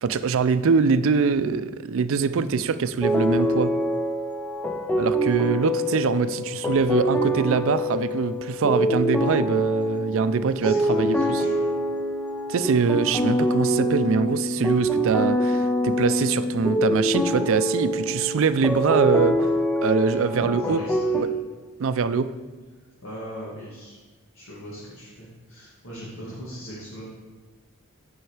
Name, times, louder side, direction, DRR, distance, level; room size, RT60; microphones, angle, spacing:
voice 1, 0.0-3.7 5.0-11.4 12.5-19.4 19.8-20.8 21.1-21.3 21.8-22.3, right 5 dB, 65° right, 13 dB, 0.4 m, -23 dB
sound 1, 3.0-21.2, equal, 5° left, 0.4 m, -25 dB
voice 2, 10.6-11.7 20.1-21.3 23.0-24.0 24.3-27.0, equal, 65° left, -6 dB, 1.9 m, -38 dB
9.4 x 5.5 x 4.8 m, 1.3 s
head